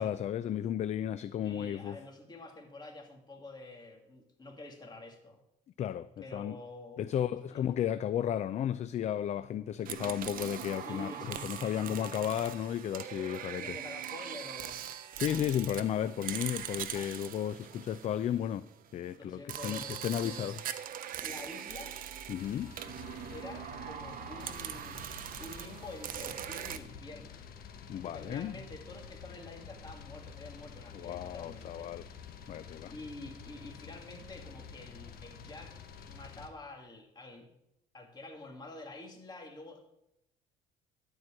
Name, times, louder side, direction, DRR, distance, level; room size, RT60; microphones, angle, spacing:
voice 1, 0.0-2.0 5.8-6.6 7.0-13.8 15.2-20.6 22.3-22.7 27.9-28.5 30.9-32.1 32.5-32.9, left 10 dB, 45° left, 0.4 m, -34 dB
voice 2, 1.4-5.4 6.2-7.1 7.5-7.6 10.8-12.1 13.6-14.9 15.4-15.5 16.9-17.1 19.2-20.4 21.2-22.0 23.3-25.0 25.4-27.4 27.9-31.9 32.9-35.8 36.1-37.5 37.9-39.9, left 2 dB, 25° left, 2.3 m, -48 dB
sound 1, 9.8-18.7 19.5-26.8, right 10 dB, 55° right, 0.7 m, -41 dB
sound 2, 22.4-36.5, left 7 dB, 60° left, 1.2 m, -49 dB
12.0 x 4.7 x 7.5 m
cardioid pair, 110°, 17 cm